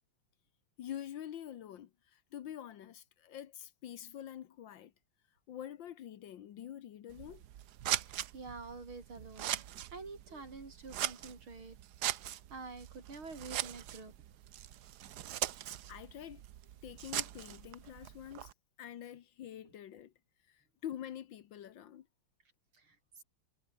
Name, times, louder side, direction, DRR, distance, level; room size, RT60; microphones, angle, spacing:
voice 1, 0.8-4.9 5.5-7.4 10.3-10.4 15.7-16.4 16.8-18.5 18.8-20.1 20.5-22.1, left 10 dB, 70° left, 1.7 m, -46 dB
Scissors, 7.1-18.5, right 12 dB, 65° right, 1.2 m, -41 dB
voice 2, 8.0-9.6 9.9-11.8 12.5-14.1 22.7-23.2, right 4 dB, 85° right, 5.6 m, -48 dB
omnidirectional pair, 2.2 m